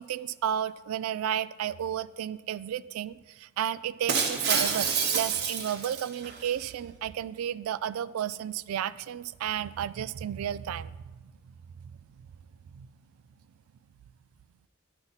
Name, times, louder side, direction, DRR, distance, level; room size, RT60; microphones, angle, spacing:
voice 1, 0.0-11.2 12.7-12.9, right 9 dB, 90° right, 17 dB, 0.3 m, -32 dB
Shatter, 4.1-6.5, right 6 dB, 50° right, 0.8 m, -28 dB
10.5 x 5.6 x 4.0 m, 1.2 s
head